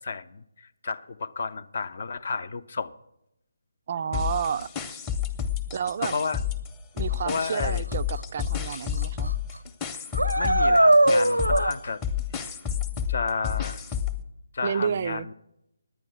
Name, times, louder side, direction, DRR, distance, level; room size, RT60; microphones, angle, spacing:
voice 1, 0.0-2.9 4.1-4.3 6.0-6.4 7.2-7.8 10.4-12.0 13.1-13.8 14.5-15.3, left 4 dB, 45° left, 14 dB, 0.6 m, -32 dB
voice 2, 3.9-4.7 5.7-6.1 6.9-9.3 14.6-15.3, right 7 dB, 35° right, 14 dB, 0.3 m, -30 dB
sound 1, 4.1-6.7 7.0-14.2, left 9 dB, 15° left, 0.8 m, -30 dB
sound 2, 8.2-8.3 8.7-9.0 9.3-9.4 10.1-11.7, right 1 dB, 90° right, 0.7 m, -19 dB
10.5 x 9.3 x 6.1 m, 0.83 s
figure-of-eight pair, 145°, 0 cm